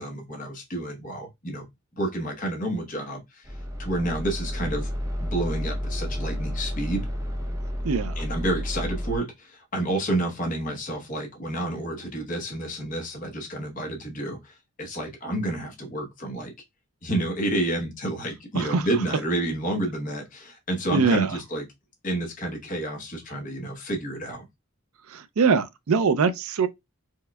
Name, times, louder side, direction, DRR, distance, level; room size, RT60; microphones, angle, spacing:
voice 1, 0.0-1.7 1.9-4.9 5.2-7.1 8.2-16.5 17.0-21.7 22.0-24.4, right 1 dB, 40° left, 1.0 m, -30 dB
sound 1, 3.4-9.2, equal, 15° right, 0.5 m, -31 dB
voice 2, 7.8-8.2 18.6-18.8 20.9-21.3 25.1-26.7, right 5 dB, 80° right, 0.5 m, -23 dB
4.4 x 2.2 x 2.2 m
head